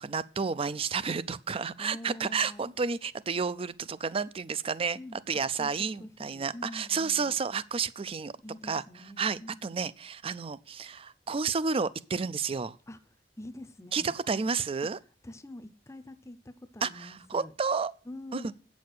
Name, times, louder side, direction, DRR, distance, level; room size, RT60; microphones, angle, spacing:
voice 1, 0.0-5.0 5.3-8.3 8.6-8.8 9.2-12.8 13.9-15.0 16.8-17.9 18.3-18.5, right 5 dB, 35° right, 0.4 m, -31 dB
voice 2, 1.8-2.7 5.0-7.4 8.4-9.7 12.9-13.0 13.4-14.2 14.8-14.9 15.2-17.5 18.1-18.5, left 1 dB, 15° left, 0.6 m, -45 dB
8.4 x 6.2 x 6.6 m
head